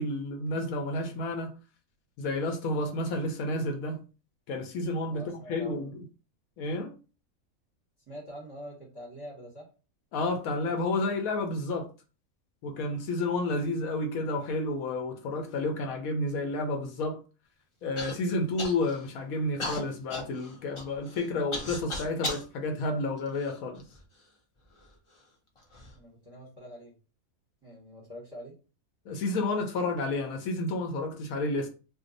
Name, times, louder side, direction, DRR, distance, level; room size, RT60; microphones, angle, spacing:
voice 1, 0.0-1.5 2.2-4.0 4.5-6.0 6.6-6.9 10.1-11.9 12.6-17.2 17.8-23.8 29.1-31.7, left 2 dB, 75° left, 1.1 m, -31 dB
voice 2, 5.1-5.9 8.1-9.7 25.9-26.9 27.6-28.5, equal, 20° right, 0.9 m, -45 dB
Human voice / Cough, 18.0-18.1 18.6-19.1 19.6-22.5 23.2-24.0 24.8-24.9 25.6-25.9, left 2 dB, 50° left, 0.3 m, -37 dB
2.6 x 2.3 x 3.8 m
omnidirectional pair, 1.5 m